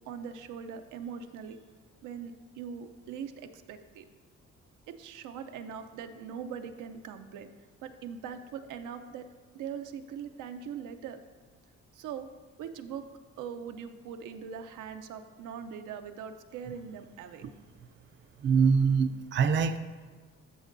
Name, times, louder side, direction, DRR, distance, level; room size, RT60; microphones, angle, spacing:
voice 1, 0.0-1.6 2.0-4.0 4.9-7.5 7.8-9.3 9.5-11.2 11.9-12.3 12.6-13.0 13.4-17.4, right 7 dB, 85° right, 7 dB, 0.6 m, -41 dB
voice 2, 18.4-19.8, right 6 dB, 40° right, 9 dB, 0.5 m, -24 dB
13.5 x 5.3 x 2.6 m, 1.4 s
cardioid pair, 90°, 30 cm